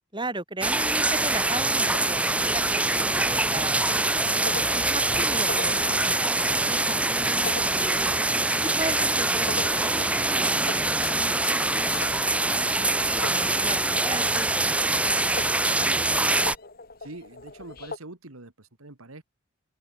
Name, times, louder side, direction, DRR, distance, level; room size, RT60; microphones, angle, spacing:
voice 1, 0.1-3.9 4.7-8.1 8.8-10.1 10.3-12.1 12.9-15.6 16.2-16.4, right 2 dB, 20° right, 3.5 m, -37 dB
sound 1, 0.6-16.6, right 2 dB, 5° right, 0.6 m, -24 dB
Burping eructation, 1.2-15.6, left 5 dB, 85° left, 1.2 m, -45 dB
sound 2, 3.4-18.0, left 3 dB, 45° left, 1.8 m, -42 dB
voice 2, 17.0-19.2, right 2 dB, 80° right, 2.1 m, -44 dB
open air
head